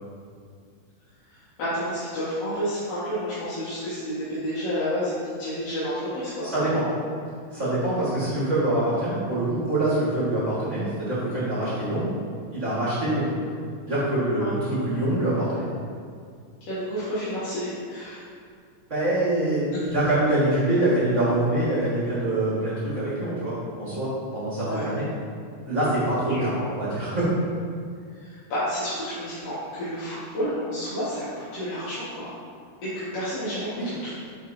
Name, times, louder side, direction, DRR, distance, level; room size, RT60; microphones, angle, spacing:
voice 1, 1.3-6.5 14.4-14.6 16.7-18.3 19.7-19.8 24.6-24.9 26.3-26.6 28.2-32.3 32.8-34.1, equal, 60° left, -14 dB, 2.5 m, -30 dB
voice 2, 6.5-6.8 7.5-12.1 12.5-13.3 13.9-15.7 18.9-25.1 25.6-27.3 33.8-33.9, right 1 dB, 35° right, -10 dB, 1.4 m, -25 dB
8.9 x 4.7 x 2.7 m, 2.2 s
omnidirectional pair, 3.5 m